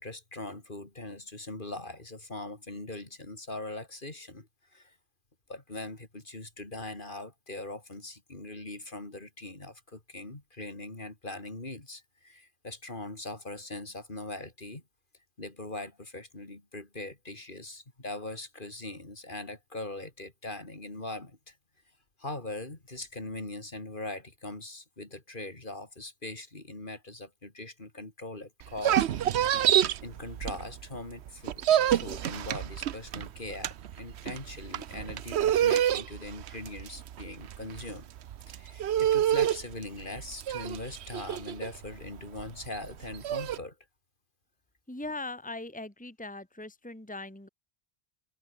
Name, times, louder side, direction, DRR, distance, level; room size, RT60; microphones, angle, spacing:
voice 1, 0.0-5.0 5.5-14.8 15.4-21.6 22.2-29.1 29.5-29.6 30.0-38.1 38.5-43.8, left 2 dB, 50° left, 3.5 m, -41 dB
sound 1, 28.6-31.0 31.3-43.6, right 11 dB, 75° right, 1.0 m, -28 dB
voice 2, 44.9-47.5, left 2 dB, 5° left, 2.1 m, -40 dB
omnidirectional pair, 1.1 m